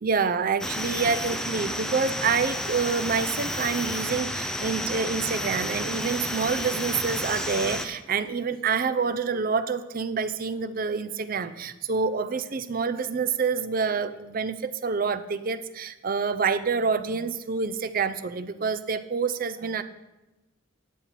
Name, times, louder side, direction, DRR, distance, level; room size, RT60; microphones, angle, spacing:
voice 1, 0.0-19.8, right 5 dB, 45° right, 11 dB, 0.5 m, -27 dB
sound 1, 0.6-7.9, left 1 dB, 5° left, 0.5 m, -31 dB
10.0 x 7.1 x 5.8 m, 1.0 s
head